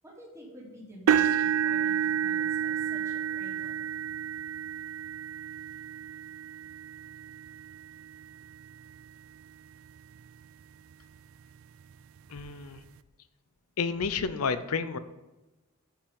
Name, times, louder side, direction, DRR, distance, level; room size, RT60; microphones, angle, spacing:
voice 1, 0.0-3.8, equal, 15° right, -5 dB, 2.7 m, -49 dB
sound 1, 1.1-9.1 9.7-10.0 10.4-10.5 11.9-12.0, right 9 dB, 65° right, 0.4 m, -30 dB
voice 2, 12.3-12.8 13.8-15.0, left 5 dB, 85° left, 13 dB, 0.6 m, -30 dB
10.0 x 5.7 x 5.3 m, 1.1 s
head